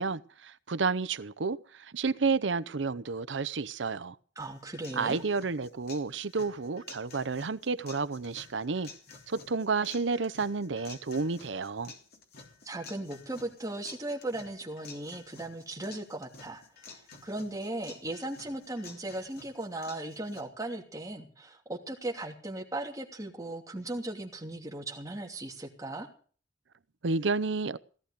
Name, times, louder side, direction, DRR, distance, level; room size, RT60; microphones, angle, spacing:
voice 1, 0.0-4.2 5.0-8.9 9.3-11.9 27.0-27.8, right 4 dB, 80° right, 0.7 m, -31 dB
sound 1, 4.4-20.4, left 4 dB, 55° left, 3.5 m, -51 dB
voice 2, 4.4-5.2 12.6-26.1, right 1 dB, 20° right, 2.9 m, -37 dB
17.0 x 13.0 x 5.2 m
head